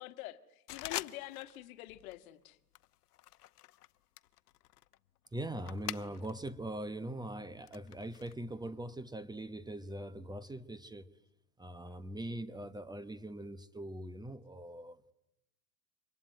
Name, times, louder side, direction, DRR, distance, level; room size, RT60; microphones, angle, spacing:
voice 1, 0.0-2.6, left 16 dB, 60° left, 1.6 m, -46 dB
sound 1, 0.7-1.6 1.9-2.2 2.7-6.5 6.8-8.3, left 14 dB, 80° left, 0.9 m, -45 dB
voice 2, 5.3-11.1 11.6-15.1, right 1 dB, 10° right, 1.0 m, -42 dB
25.5 x 21.5 x 9.3 m
hypercardioid pair, 100°, 46 cm